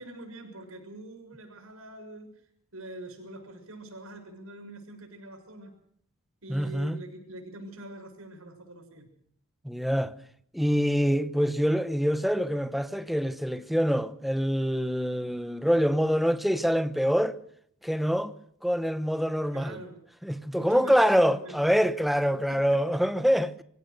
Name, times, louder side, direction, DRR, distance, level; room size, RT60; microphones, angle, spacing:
voice 1, 0.0-2.4 2.7-5.7 6.4-9.1 19.5-20.0 20.5-21.7 22.5-23.0, right 1 dB, 70° right, 6.7 m, -44 dB
voice 2, 6.5-7.0 9.6-10.1 10.5-17.4 17.8-18.3 18.6-19.8 20.2-23.6, equal, ahead, 0.9 m, -25 dB
25.0 x 16.0 x 6.6 m
head